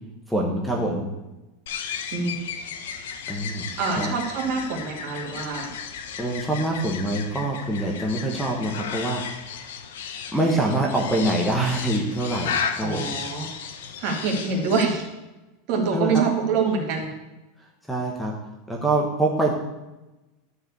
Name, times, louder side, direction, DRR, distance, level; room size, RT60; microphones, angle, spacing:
voice 1, 0.3-1.1 3.3-3.6 4.0-4.1 6.2-9.7 10.3-13.1 15.9-16.2 17.9-18.3 18.7-19.5, right 1 dB, ahead, -1 dB, 1.1 m, -25 dB
sound 1, 1.7-14.9, left 7 dB, 90° left, 1.2 m, -34 dB
voice 2, 3.8-5.7 12.8-13.4 14.0-15.0 15.7-17.1, right 5 dB, 40° right, 1 dB, 2.4 m, -25 dB
12.0 x 4.9 x 8.1 m, 1.0 s
supercardioid pair, 175°, 0 cm